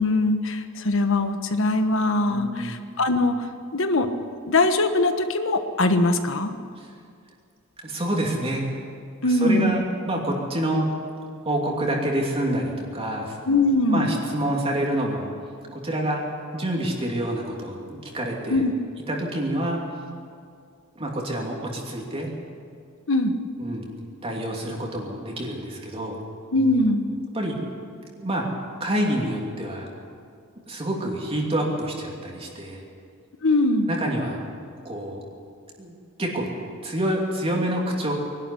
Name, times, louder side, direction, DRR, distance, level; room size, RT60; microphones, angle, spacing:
voice 1, 0.0-3.3 3.7-4.1 4.4-6.5 9.2-9.8 13.5-14.1 18.5-18.7 23.1-23.3 26.5-27.1 33.4-33.9, left 2 dB, 65° left, 7 dB, 1.4 m, -21 dB
voice 2, 2.2-2.8 6.8-6.9 7.8-8.6 9.2-10.9 11.4-13.4 13.9-15.3 15.7-16.2 16.5-18.7 19.1-19.8 21.0-22.3 23.6-23.9 24.2-26.2 27.3-27.6 28.2-28.4 28.8-29.9 30.7-32.8 33.9-34.4 34.8-35.2 35.8-36.5 36.8-38.1, right 1 dB, 30° right, -1 dB, 2.8 m, -27 dB
21.5 x 12.5 x 10.0 m, 2.3 s
head